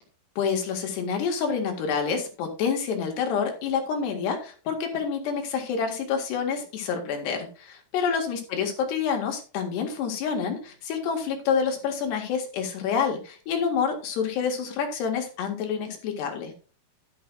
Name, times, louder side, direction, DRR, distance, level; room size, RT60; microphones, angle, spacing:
voice 1, 0.4-16.5, left 6 dB, 90° left, 3 dB, 4.1 m, -28 dB
11.5 x 11.0 x 2.6 m, 0.36 s
omnidirectional pair, 4.7 m